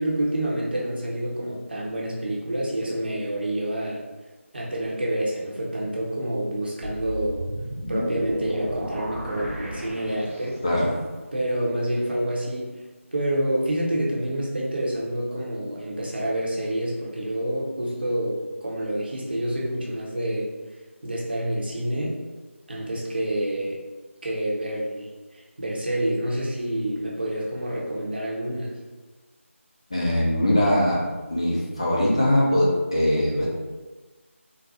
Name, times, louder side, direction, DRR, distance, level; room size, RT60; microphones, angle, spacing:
voice 1, 0.0-4.0 4.5-7.4 7.9-10.6 11.3-12.8 13.1-20.5 21.0-22.2 22.7-23.8 24.2-28.7, right 1 dB, 45° right, -4 dB, 0.8 m, -28 dB
sound 1, 6.8-10.8, equal, 75° right, 1.0 m, -32 dB
voice 2, 29.9-31.0 31.3-33.5, left 1 dB, 25° left, -5 dB, 0.4 m, -21 dB
4.0 x 2.0 x 2.7 m, 1.3 s
figure-of-eight pair, 165°, 7 cm